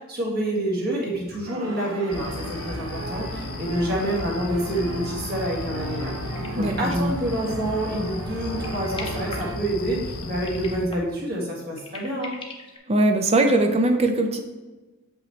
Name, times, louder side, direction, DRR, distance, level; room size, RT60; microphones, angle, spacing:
voice 1, 0.1-6.1 6.5-12.3, right 1 dB, 45° right, -3 dB, 1.8 m, -27 dB
sound 1, 1.5-9.6, right 2 dB, 60° right, 0.8 m, -37 dB
sound 2, 2.0-2.1 2.3-2.4 2.8-7.3 7.8-8.1 8.4-10.0 10.3-12.8, left 3 dB, 25° left, 0.8 m, -43 dB
sound 3, 2.1-10.9, left 2 dB, 70° left, 0.6 m, -34 dB
voice 2, 6.5-7.1 12.9-14.4, right 2 dB, 30° right, 5 dB, 0.6 m, -21 dB
7.1 x 5.5 x 3.2 m, 1.2 s
head